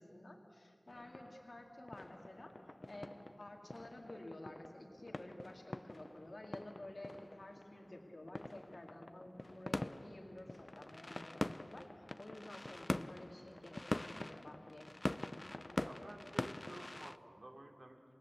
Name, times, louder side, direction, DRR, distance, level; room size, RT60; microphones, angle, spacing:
voice 1, 0.0-14.9, left 1 dB, 70° left, 2 dB, 2.2 m, -52 dB
sound 1, 0.9-17.2, left 1 dB, 45° left, 0.6 m, -45 dB
voice 2, 15.8-18.1, right 1 dB, 75° right, 2 dB, 3.0 m, -53 dB
28.0 x 18.5 x 8.2 m, 2.3 s
wide cardioid pair, 55°, 0 cm